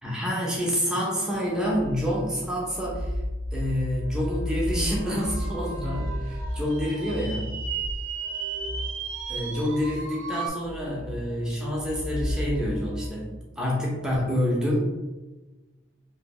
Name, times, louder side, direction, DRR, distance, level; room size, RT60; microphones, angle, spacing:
voice 1, 0.0-3.2 3.5-7.6 9.3-14.9, equal, 5° right, -4 dB, 0.7 m, -28 dB
sound 1, 1.1-13.1, equal, 80° left, 1.3 m, -34 dB
sound 2, 4.9-10.5, right 5 dB, 75° right, 0.5 m, -36 dB
2.9 x 2.7 x 3.0 m, 1.2 s
head